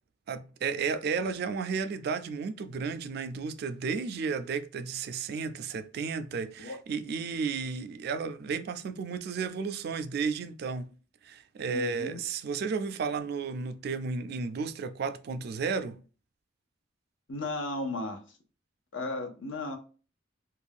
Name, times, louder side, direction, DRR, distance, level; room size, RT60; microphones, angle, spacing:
voice 1, 0.3-10.9 11.2-16.0, right 5 dB, 55° right, 0.3 m, -33 dB
voice 2, 11.7-12.2 17.3-18.2 18.9-19.8, left 2 dB, 85° left, 0.7 m, -35 dB
2.5 x 2.2 x 3.4 m
head